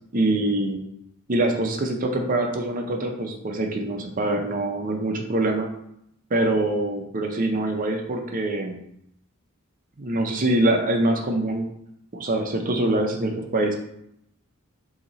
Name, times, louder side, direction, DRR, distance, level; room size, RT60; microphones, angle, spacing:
voice 1, 0.1-0.8 1.3-5.7 6.3-8.8 10.0-11.7 12.1-13.7, right 1 dB, 40° right, 3 dB, 0.6 m, -24 dB
4.2 x 2.8 x 3.9 m, 0.76 s
head